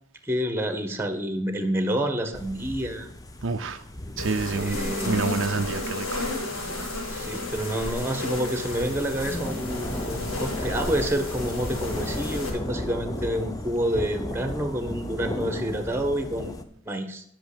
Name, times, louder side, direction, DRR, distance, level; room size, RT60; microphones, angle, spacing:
voice 1, 0.3-3.1 4.5-5.3 7.1-17.2, equal, 10° right, 1.2 m, -28 dB
sound 1, 2.3-16.6, left 1 dB, 15° left, 0.7 m, -36 dB
voice 2, 3.4-3.8 4.2-4.8 5.1-6.3, right 4 dB, 65° right, 0.6 m, -27 dB
sound 2, 4.2-12.5, left 2 dB, 80° left, 4.5 m, -33 dB
11.0 x 6.4 x 6.7 m
head